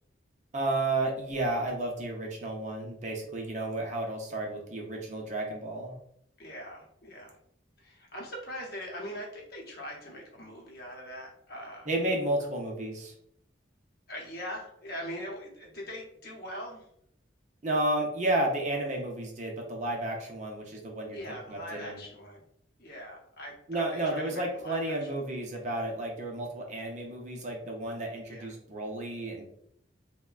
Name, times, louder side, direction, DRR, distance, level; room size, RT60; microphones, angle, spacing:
voice 1, 0.5-6.0 11.9-13.1 17.6-21.2 21.5-22.0 23.7-29.5, right 2 dB, 40° right, 0 dB, 0.5 m, -32 dB
voice 2, 6.4-7.4 7.8-11.9 14.1-16.9 21.1-22.4 22.8-25.1 28.3-28.5, equal, 55° left, -1 dB, 0.8 m, -42 dB
3.3 x 2.1 x 2.3 m, 0.70 s
head